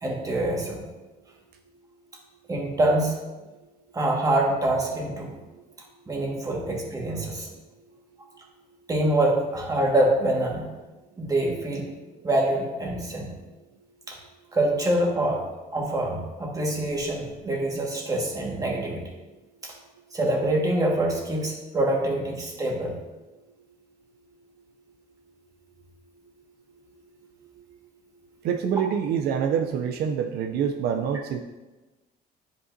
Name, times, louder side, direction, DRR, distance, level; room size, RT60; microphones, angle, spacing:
voice 1, 0.0-0.9 2.5-3.2 3.9-5.4 6.1-7.5 8.9-10.7 11.2-11.9 12.2-13.3 14.1-14.2 14.5-15.4 15.7-19.0 19.6-19.7 20.1-23.0, right 1 dB, 20° right, -1 dB, 1.7 m, -25 dB
voice 2, 28.4-31.4, right 7 dB, 70° right, 4 dB, 0.5 m, -26 dB
9.8 x 5.3 x 2.7 m, 1.1 s
cardioid pair, 110°, 17 cm